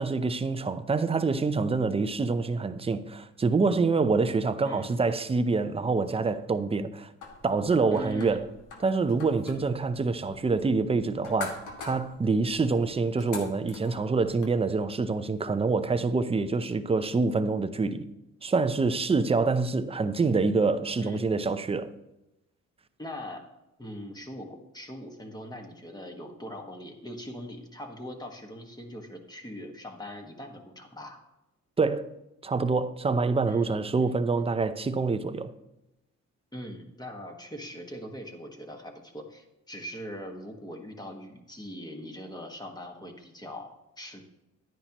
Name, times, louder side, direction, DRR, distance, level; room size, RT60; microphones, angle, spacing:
voice 1, 0.0-7.1 7.4-8.5 8.8-18.1 18.4-21.9 31.8-32.1 32.4-35.5, right 4 dB, 20° right, 0.6 m, -26 dB
voice 2, 4.6-5.0 7.9-8.5 21.0-21.3 23.0-23.4 23.8-31.2 33.5-34.2 36.5-44.2, equal, 15° left, 1.6 m, -41 dB
sound 1, 7.2-14.5, left 4 dB, 85° left, 1.8 m, -44 dB
10.5 x 9.8 x 3.0 m
cardioid pair, 90°, 30 cm